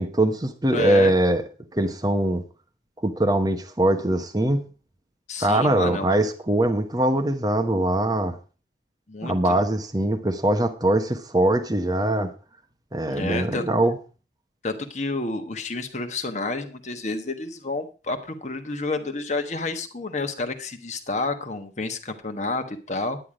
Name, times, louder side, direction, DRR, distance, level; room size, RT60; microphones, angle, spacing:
voice 1, 0.0-1.4 1.7-2.4 3.0-4.6 5.4-8.3 9.2-12.3 12.9-14.0, right 1 dB, 20° right, 5 dB, 1.0 m, -22 dB
voice 2, 0.7-1.1 5.3-6.1 9.1-9.6 13.1-13.6 14.6-23.2, left 3 dB, 40° left, 6 dB, 1.2 m, -30 dB
10.0 x 9.3 x 4.9 m, 0.34 s
head